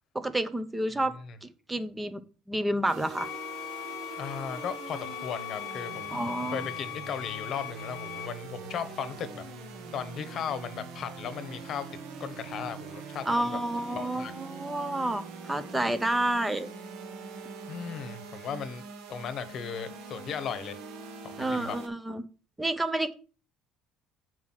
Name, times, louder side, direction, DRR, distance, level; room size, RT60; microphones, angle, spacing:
voice 1, 0.1-1.1 1.4-2.2 2.5-3.3 6.1-6.7 13.3-16.7 21.4-22.2 22.6-23.1, right 1 dB, 10° right, 0.7 m, -29 dB
sound 1, 2.9-21.9, right 4 dB, 75° right, 1.5 m, -43 dB
sound 2, 3.2-8.3, left 16 dB, 70° left, 0.5 m, -40 dB
voice 2, 4.2-9.4 9.9-11.9 12.2-13.6 13.9-14.3 17.7-18.8 19.1-20.8 21.2-21.8, left 7 dB, 45° left, 1.1 m, -36 dB
8.0 x 4.8 x 5.8 m
cardioid pair, 145°, 0 cm